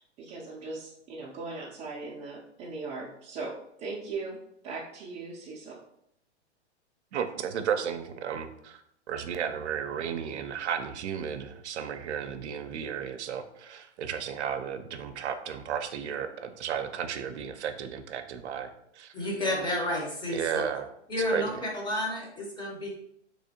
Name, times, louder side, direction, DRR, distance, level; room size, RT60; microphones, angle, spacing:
voice 1, 0.0-4.4 4.6-5.8, right 3 dB, 20° right, -6 dB, 0.4 m, -39 dB
voice 2, 7.1-8.8 9.1-19.1 20.3-20.9 21.3-21.5, right 8 dB, 75° right, 7 dB, 0.5 m, -33 dB
voice 3, 19.1-20.6 21.1-22.9, left 1 dB, 10° left, -2 dB, 0.7 m, -31 dB
3.4 x 3.0 x 2.7 m, 0.74 s
hypercardioid pair, 115°, 35 cm